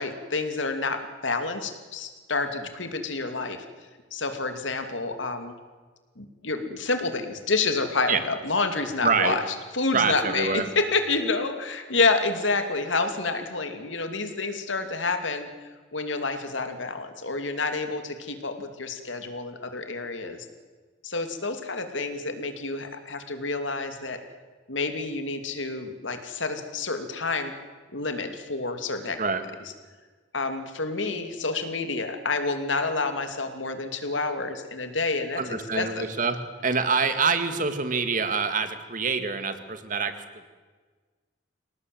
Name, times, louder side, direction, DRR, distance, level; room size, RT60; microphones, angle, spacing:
voice 1, 0.0-3.6 4.1-5.5 6.2-9.4 9.7-15.5 15.9-20.4 21.0-24.2 24.7-27.5 27.9-29.2 30.3-36.1, left 3 dB, 80° left, 7 dB, 2.7 m, -28 dB
voice 2, 9.0-9.4 9.9-10.7 29.2-29.4 35.4-40.1, right 4 dB, 45° right, 10 dB, 2.0 m, -26 dB
27.0 x 18.0 x 7.9 m, 1.4 s
head